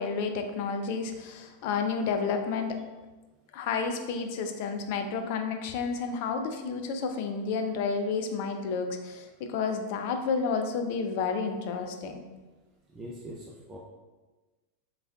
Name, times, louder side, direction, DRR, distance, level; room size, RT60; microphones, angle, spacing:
voice 1, 0.0-2.8 3.5-12.2, left 5 dB, 60° left, 6 dB, 0.4 m, -31 dB
voice 2, 12.9-13.8, equal, 15° right, -4 dB, 0.5 m, -42 dB
4.0 x 3.3 x 2.3 m, 1.2 s
hypercardioid pair, 95°, 0 cm